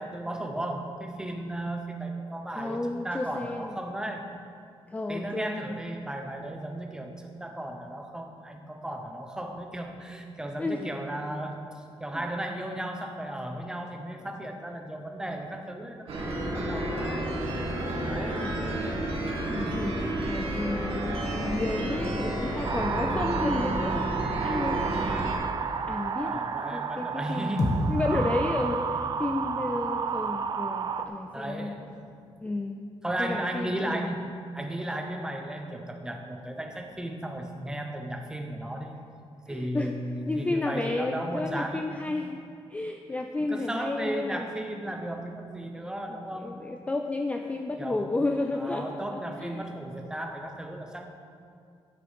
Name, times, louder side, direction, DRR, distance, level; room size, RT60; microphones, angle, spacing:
voice 1, 0.0-4.3 5.1-11.6 12.0-17.4 18.0-18.5 26.2-27.8 31.3-32.2 33.0-34.2 34.5-38.9 39.5-41.9 43.4-46.6 47.5-48.3 48.5-51.1, right 1 dB, 5° right, 3 dB, 0.8 m, -35 dB
voice 2, 2.6-3.8 4.9-5.8 10.6-10.8 18.4-18.6 19.5-20.0 20.3-24.1 24.4-25.0 25.9-27.6 27.9-31.8 32.4-32.8 33.2-34.1 39.5-39.9 40.3-42.4 42.7-44.5 46.1-49.6, left 2 dB, 15° left, 4 dB, 0.4 m, -32 dB
sound 1, 16.1-25.4, right 1 dB, 75° right, 2.0 m, -30 dB
sound 2, 22.6-31.0, right 6 dB, 45° right, 0.5 m, -31 dB
sound 3, 27.6-31.9, left 1 dB, 35° left, 1.3 m, -33 dB
12.5 x 6.8 x 5.3 m, 2.3 s
wide cardioid pair, 180°, 10 cm